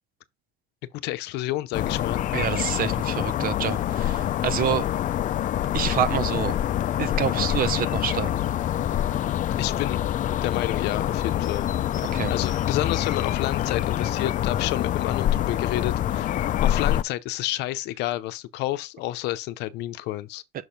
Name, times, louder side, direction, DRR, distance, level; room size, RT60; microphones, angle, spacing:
voice 1, 1.0-2.2 9.6-10.0 10.4-11.7 12.3-20.4, left 15 dB, 90° left, 0.7 m, -30 dB
sound 1, 1.7-17.0, left 11 dB, 50° left, 0.5 m, -26 dB
voice 2, 2.3-4.9 5.7-6.6 7.0-8.3 12.1-12.3, right 9 dB, 60° right, 0.7 m, -27 dB
6.4 x 4.4 x 5.0 m
cardioid pair, 110°, 17 cm